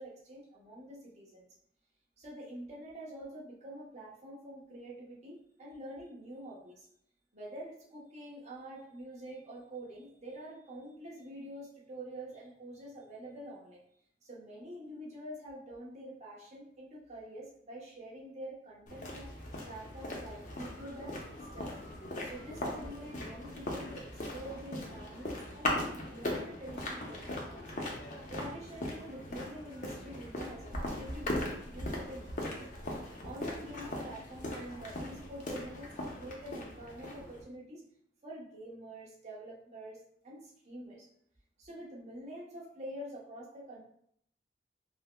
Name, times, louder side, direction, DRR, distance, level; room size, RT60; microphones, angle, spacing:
voice 1, 0.0-1.4 2.2-6.9 7.3-13.8 14.2-19.2 19.7-21.8 22.2-27.6 28.3-32.7 33.2-37.8 38.2-41.1 41.6-43.8, right 1 dB, 40° right, -4 dB, 0.9 m, -46 dB
sound 1, 18.9-37.4, left 1 dB, 45° left, 0.7 m, -39 dB
5.4 x 2.0 x 2.2 m, 0.68 s
head